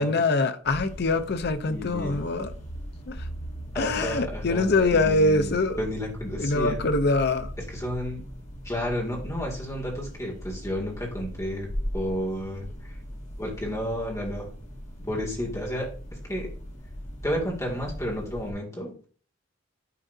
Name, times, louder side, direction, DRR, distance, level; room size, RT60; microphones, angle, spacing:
voice 1, 0.0-2.5 3.1-3.2 3.7-5.8 6.4-7.5, left 2 dB, 55° left, 0.6 m, -24 dB
sound 1, 0.6-18.5, equal, 35° left, 1.8 m, -39 dB
voice 2, 1.7-2.2 3.7-6.8 7.7-8.2 8.6-13.0 13.4-14.5 15.1-15.9 16.3-16.5 17.2-19.1, equal, 15° left, 2.2 m, -32 dB
9.6 x 4.5 x 2.7 m
head